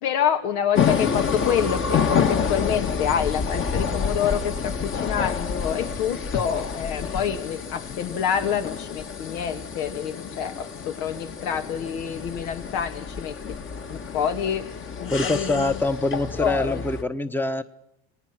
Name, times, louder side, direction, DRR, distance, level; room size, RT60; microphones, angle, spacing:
voice 1, 0.0-13.4 13.9-15.8 16.4-16.8, left 8 dB, 75° left, 7 dB, 2.3 m, -27 dB
sound 1, 0.7-17.0, left 6 dB, 35° left, 1.9 m, -28 dB
voice 2, 15.1-17.6, left 2 dB, 5° left, 11 dB, 1.1 m, -25 dB
29.0 x 19.0 x 6.1 m, 0.77 s
supercardioid pair, 110°, 34 cm